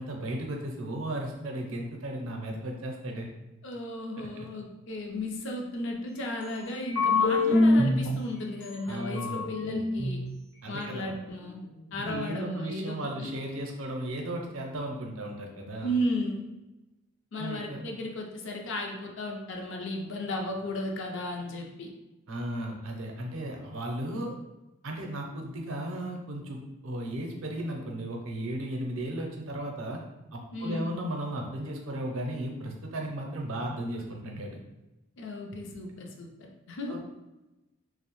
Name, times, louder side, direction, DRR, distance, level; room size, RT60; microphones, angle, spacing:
voice 1, 0.0-3.3 4.2-4.5 8.8-9.4 10.6-11.2 12.0-15.9 17.4-17.8 22.3-24.3 24.8-30.0 30.3-34.6 36.9-37.0, right 1 dB, 70° right, 1 dB, 0.5 m, -35 dB
voice 2, 3.6-10.2 10.7-11.7 11.9-13.3 15.8-16.5 17.3-21.9 30.5-31.0 35.2-37.0, left 1 dB, 60° left, 2 dB, 0.4 m, -34 dB
sound 1, 6.8-8.1 8.6-8.7 9.0-10.2, left 2 dB, 80° left, 0.9 m, -24 dB
2.6 x 2.0 x 2.9 m, 1.0 s
head